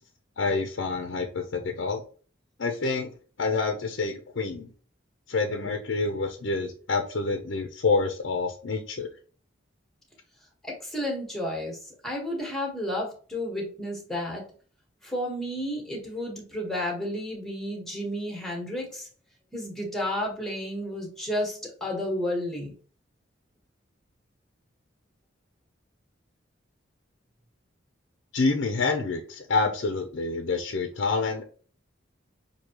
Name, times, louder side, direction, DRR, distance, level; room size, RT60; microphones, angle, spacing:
voice 1, 0.4-2.0 2.6-4.7 5.3-9.1 28.3-31.4, left 3 dB, 70° left, 4 dB, 0.6 m, -27 dB
voice 2, 10.6-11.8 12.0-14.4 15.0-19.1 19.5-22.7, left 1 dB, ahead, -1 dB, 1.3 m, -32 dB
6.3 x 2.8 x 2.9 m, 0.41 s
head